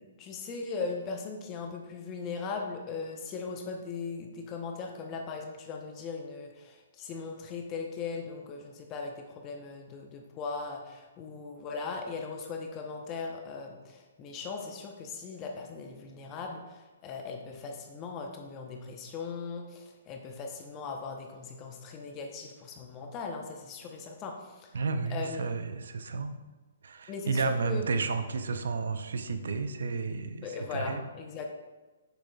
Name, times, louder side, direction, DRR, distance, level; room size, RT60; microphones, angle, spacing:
voice 1, 0.0-24.7 25.1-25.5 27.1-27.9 30.4-31.5, left 4 dB, 25° left, 2 dB, 0.7 m, -39 dB
voice 2, 24.7-26.4 26.8-31.0, right 4 dB, 70° right, 9 dB, 0.6 m, -32 dB
6.8 x 6.0 x 2.3 m, 1.2 s
hypercardioid pair, 135°, 0 cm